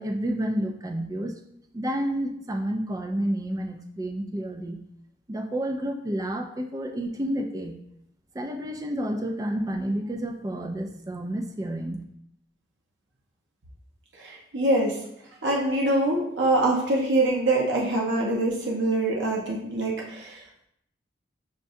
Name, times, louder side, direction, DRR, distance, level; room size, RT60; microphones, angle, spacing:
voice 1, 0.0-1.3 1.7-4.8 5.3-7.8 8.3-12.0, right 1 dB, 20° right, 5 dB, 0.4 m, -30 dB
voice 2, 14.2-15.0 15.4-20.4, right 2 dB, 70° right, -2 dB, 0.8 m, -24 dB
6.4 x 2.2 x 2.6 m, 0.73 s
head